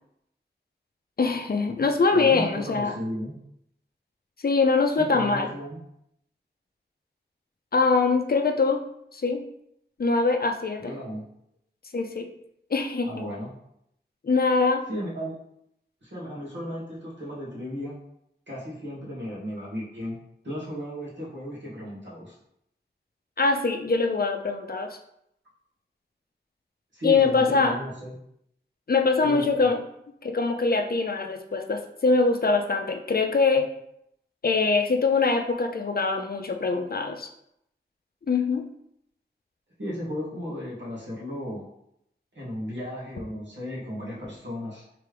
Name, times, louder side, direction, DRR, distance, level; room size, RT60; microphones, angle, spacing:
voice 1, 1.2-2.9 4.4-5.5 7.7-8.8 9.1-9.4 10.0-10.9 11.9-12.3 12.7-13.3 14.2-14.9 23.4-25.0 27.0-27.8 28.9-29.8 30.2-33.7 34.4-37.3 38.3-38.7, left 4 dB, 55° left, 4 dB, 0.5 m, -23 dB
voice 2, 2.1-3.3 5.0-5.8 10.8-11.2 13.0-13.5 14.9-15.3 16.0-18.0 18.5-20.2 20.4-22.4 26.9-28.1 29.2-29.7 39.8-41.6 42.3-44.8, equal, 80° right, -7 dB, 1.5 m, -35 dB
3.4 x 3.3 x 3.3 m, 0.77 s
wide cardioid pair, 65°, 18 cm